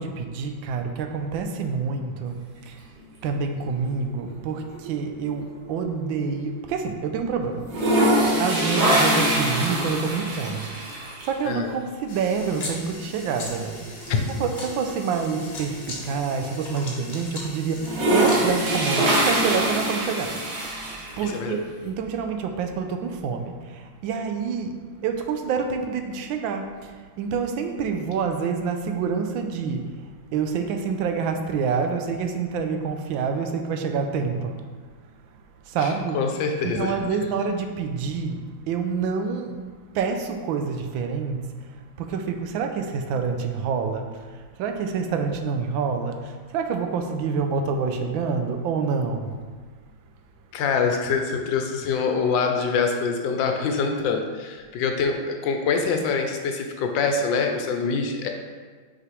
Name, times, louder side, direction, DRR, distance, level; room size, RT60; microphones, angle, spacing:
voice 1, 0.0-2.4 2.7-2.9 3.2-8.1 8.4-29.9 30.3-34.6 35.7-36.2 36.6-38.4 38.7-39.6 39.9-41.4 42.0-49.3, right 5 dB, 80° right, 5 dB, 1.3 m, -27 dB
sound 1, 3.6-4.4 4.7-6.7 7.0-7.1 7.6-11.3 12.7-12.9 13.3-13.4 13.7-16.1 16.6-16.7 17.7-21.4, right 1 dB, 60° right, 1.7 m, -24 dB
sound 2, 12.1-18.7, left 2 dB, 45° left, 0.9 m, -38 dB
voice 2, 21.2-21.6 35.8-37.0 50.5-58.3, left 5 dB, 75° left, 4 dB, 1.3 m, -25 dB
6.3 x 4.8 x 3.1 m, 1.5 s
omnidirectional pair, 2.1 m